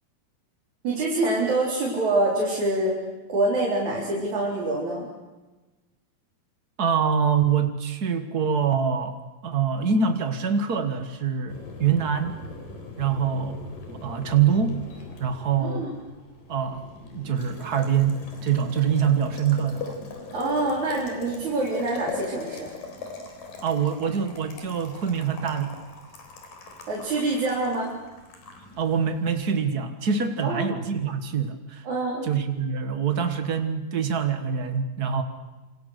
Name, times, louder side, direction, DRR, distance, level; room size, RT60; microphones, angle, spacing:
voice 1, 0.8-3.0 3.3-5.1 11.6-11.7 15.6-15.9 20.3-22.7 26.9-28.0 30.4-30.7 31.8-32.3, right 2 dB, 50° right, -4 dB, 5.3 m, -25 dB
voice 2, 6.8-9.2 9.4-12.4 13.0-14.8 15.2-15.9 16.5-16.9 17.1-20.0 23.6-25.8 28.8-31.8 32.2-35.2, right 7 dB, 90° right, 7 dB, 0.8 m, -25 dB
Boiling, 11.5-29.4, left 4 dB, 70° left, 5.5 m, -41 dB
27.5 x 26.0 x 6.7 m, 1.2 s
omnidirectional pair, 4.2 m